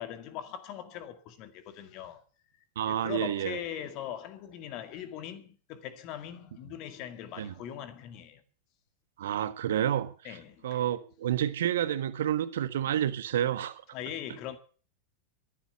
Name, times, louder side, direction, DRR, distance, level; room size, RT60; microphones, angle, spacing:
voice 1, 0.0-2.2 2.9-8.4 10.2-10.8 13.9-14.6, left 10 dB, 40° left, 1.9 m, -41 dB
voice 2, 2.7-3.6 7.4-7.5 9.2-10.4 10.6-13.8, right 10 dB, 60° right, 1.3 m, -29 dB
14.0 x 11.0 x 6.8 m
figure-of-eight pair, 90°, 0 cm